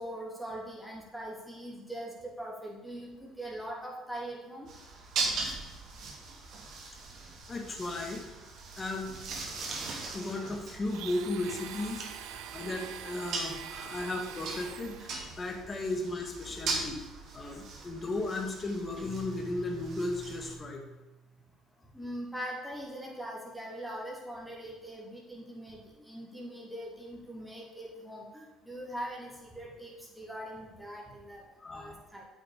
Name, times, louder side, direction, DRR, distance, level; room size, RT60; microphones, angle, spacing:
voice 1, 0.0-4.7 21.9-31.4 31.7-32.3, right 1 dB, ahead, -4 dB, 3.3 m, -41 dB
sound 1, 4.7-20.5, right 3 dB, 60° right, 2.4 m, -40 dB
voice 2, 7.5-8.3 8.8-9.2 9.5-17.0 17.3-20.8 31.6-31.9, left 2 dB, 30° left, 2 dB, 1.9 m, -36 dB
Domestic sounds home sounds, 10.9-15.3, right 11 dB, 80° right, 0.6 m, -44 dB
Guitar, 19.0-21.6, right 5 dB, 30° right, 0.6 m, -47 dB
8.8 x 6.7 x 5.1 m, 1.1 s
supercardioid pair, 90°, 0 cm